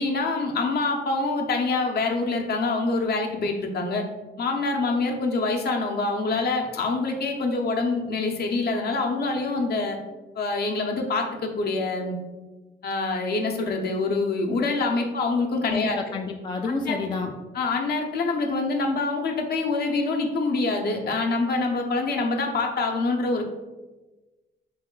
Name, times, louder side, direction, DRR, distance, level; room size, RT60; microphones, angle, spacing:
voice 1, 0.0-4.0 4.4-10.0 10.4-12.2 12.8-16.0 16.6-17.0 17.5-23.5, left 3 dB, 55° left, 3 dB, 0.7 m, -25 dB
voice 2, 15.7-17.3, left 4 dB, 25° left, 3 dB, 0.3 m, -29 dB
3.3 x 3.1 x 3.7 m, 1.2 s
cardioid pair, 90°, 20 cm